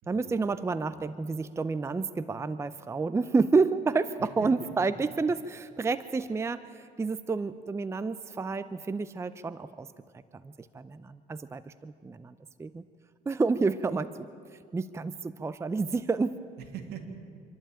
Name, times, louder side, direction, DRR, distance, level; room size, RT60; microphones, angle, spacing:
voice 1, 0.1-9.9 10.4-12.3 12.6-12.8 13.3-14.3 14.7-16.4, right 4 dB, 15° right, 13 dB, 0.5 m, -29 dB
voice 2, 4.2-4.9 16.6-17.0, right 7 dB, 75° right, 4 dB, 2.6 m, -43 dB
26.0 x 11.5 x 8.9 m, 2.3 s
cardioid pair, 110°, 17 cm